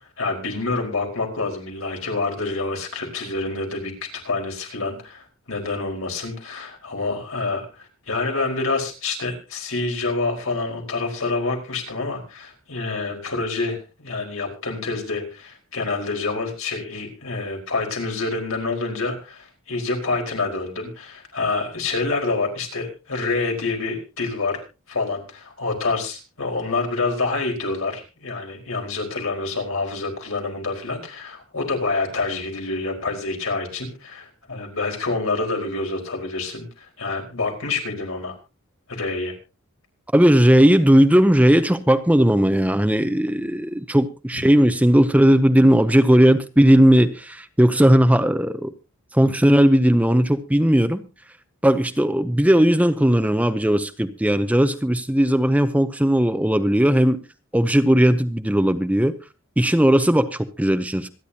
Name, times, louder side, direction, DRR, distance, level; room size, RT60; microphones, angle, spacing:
voice 1, 0.2-3.9 4.2-24.6 24.9-38.3 38.9-39.3, left 3 dB, 80° left, 4.6 m, -27 dB
voice 2, 40.1-48.7 49.1-51.0 51.6-57.2 57.5-59.2 59.6-61.1, equal, 5° right, 0.7 m, -17 dB
26.0 x 10.5 x 2.8 m
head